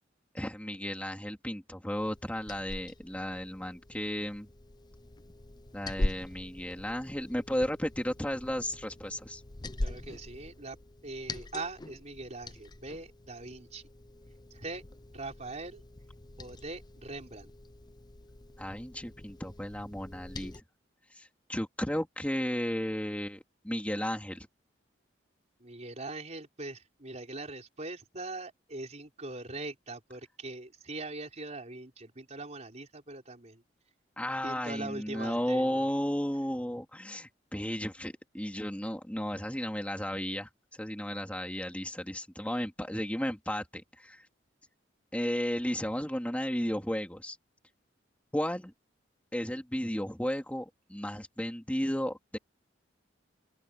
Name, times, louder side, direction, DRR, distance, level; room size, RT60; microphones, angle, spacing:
voice 1, 0.3-4.5 5.7-9.4 18.6-20.6 21.2-24.5 34.2-40.5 40.8-44.2 45.1-47.4 48.3-48.7 49.3-52.4, equal, 10° left, 3.0 m, -34 dB
Liquid, 2.0-20.6, left 1 dB, 25° left, 0.7 m, -42 dB
voice 2, 9.8-10.8 11.0-13.8 14.5-14.8 15.1-15.8 16.4-17.5 25.6-33.6 34.4-35.8, right 2 dB, 40° right, 4.7 m, -42 dB
open air
head